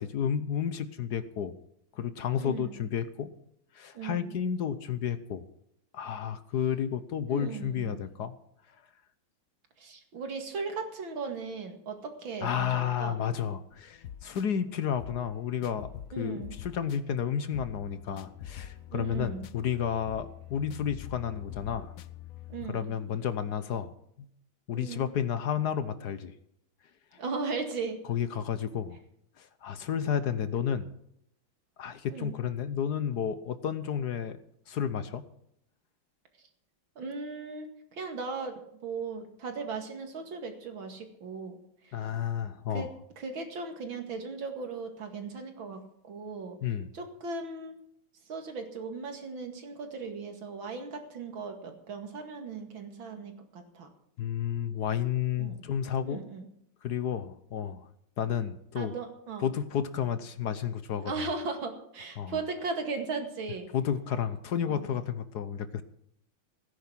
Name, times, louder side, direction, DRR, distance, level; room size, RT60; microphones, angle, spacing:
voice 1, 0.0-1.6 1.9-3.3 3.7-5.5 5.9-8.3 12.4-21.9 22.7-23.9 24.7-26.3 28.1-29.0 29.4-30.9 31.8-34.4 34.7-35.2 41.9-42.9 46.6-46.9 54.2-56.2 56.8-57.9 58.2-58.9 59.4-61.1 62.2-62.4 63.7-65.8, left 8 dB, 60° left, 13 dB, 1.3 m, -31 dB
voice 2, 2.4-2.7 3.9-4.3 7.3-8.0 9.8-13.2 16.1-16.5 18.9-19.5 22.5-22.9 24.7-25.1 27.2-28.0 32.1-32.4 37.0-42.0 42.7-42.9 43.2-45.8 46.1-46.6 46.9-47.7 48.3-53.9 55.4-55.6 56.0-56.5 58.8-59.4 61.1-63.7 64.6-64.8, right 4 dB, 70° right, 5 dB, 2.9 m, -37 dB
sound 1, 13.7-22.7, left 11 dB, 80° left, 0.7 m, -45 dB
17.0 x 10.0 x 6.2 m, 0.73 s
omnidirectional pair, 2.3 m